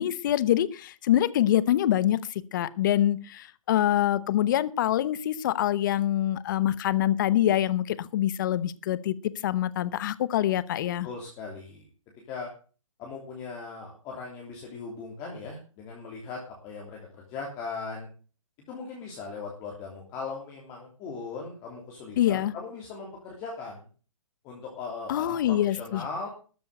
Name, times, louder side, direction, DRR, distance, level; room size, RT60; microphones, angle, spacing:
voice 1, 0.0-9.2 9.4-11.1 22.2-22.5 25.1-26.0, left 12 dB, 35° left, 18 dB, 0.9 m, -25 dB
voice 2, 11.0-11.8 12.3-12.5 13.0-18.1 18.7-23.9 24.4-26.3, left 4 dB, 20° left, -1 dB, 3.2 m, -39 dB
13.5 x 7.0 x 7.8 m, 0.38 s
hypercardioid pair, 160°, 17 cm